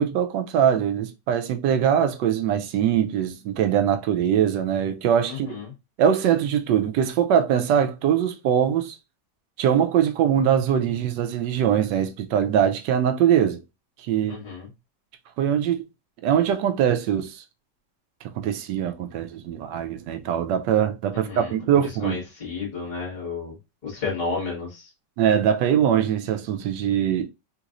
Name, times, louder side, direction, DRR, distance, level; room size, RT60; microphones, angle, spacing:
voice 1, 0.0-5.6 6.0-9.0 9.6-13.6 14.1-14.4 15.4-15.8 16.2-17.4 18.4-22.2 25.2-27.3, right 9 dB, 85° right, 1.2 m, -22 dB
voice 2, 5.3-5.7 14.3-14.7 21.3-23.6 23.8-24.9, left 4 dB, 25° left, 1.6 m, -32 dB
3.8 x 2.9 x 2.4 m
omnidirectional pair, 1.9 m